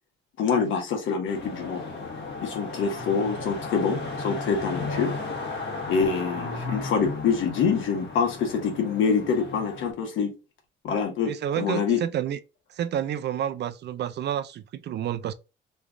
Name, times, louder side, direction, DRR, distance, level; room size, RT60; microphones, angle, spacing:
voice 1, 0.4-1.8 2.4-5.1 5.9-10.3 10.8-12.0, left 6 dB, 80° left, 1.2 m, -26 dB
sound 1, 1.3-9.9, left 3 dB, 60° left, 1.4 m, -35 dB
voice 2, 11.3-12.4 12.7-15.3, right 10 dB, 60° right, 0.5 m, -29 dB
3.2 x 2.4 x 3.5 m
cardioid pair, 90°, 20 cm